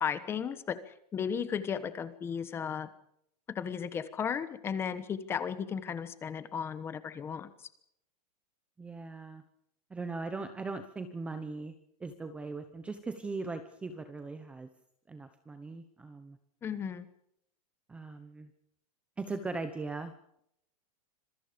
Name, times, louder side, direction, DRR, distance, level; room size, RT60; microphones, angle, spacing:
voice 1, 0.0-2.9 3.5-7.5 16.6-17.1, left 7 dB, 10° left, 13 dB, 1.2 m, -35 dB
voice 2, 8.8-9.4 9.9-14.7 15.1-16.4 17.9-18.5 19.2-20.1, right 3 dB, 5° right, 9 dB, 0.9 m, -39 dB
26.5 x 23.0 x 5.2 m, 0.72 s
supercardioid pair, 175°, 20 cm